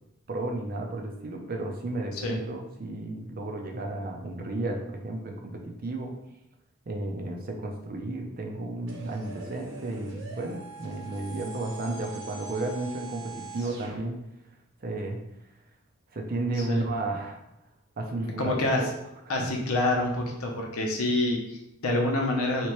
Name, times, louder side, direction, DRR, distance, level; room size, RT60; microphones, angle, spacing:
voice 1, 0.3-6.1 6.9-14.2 14.8-15.2 16.1-17.4 18.0-18.9, right 2 dB, 40° right, 2 dB, 0.5 m, -33 dB
sound 1, 8.9-14.0, right 4 dB, 60° right, 0.9 m, -43 dB
voice 2, 18.4-18.8 19.3-22.7, left 2 dB, 85° left, 0 dB, 0.8 m, -27 dB
3.3 x 3.0 x 3.0 m, 0.86 s
head